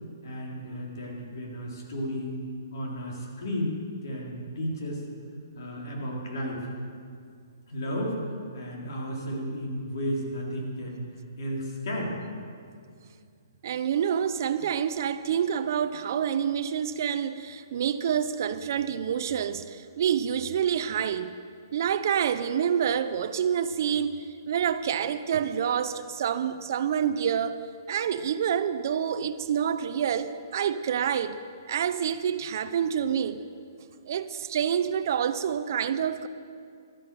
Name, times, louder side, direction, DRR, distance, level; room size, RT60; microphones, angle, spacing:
voice 1, 0.2-2.4 2.7-3.8 4.0-5.0 5.5-6.7 7.7-8.2 8.5-11.0 11.4-12.2, equal, 65° left, -2 dB, 3.7 m, -33 dB
voice 2, 13.6-21.3 21.7-27.6 27.9-31.4 31.7-33.4 34.1-36.3, right 8 dB, 50° right, 12 dB, 0.6 m, -27 dB
13.0 x 9.6 x 6.8 m, 2.3 s
hypercardioid pair, 155°, 2 cm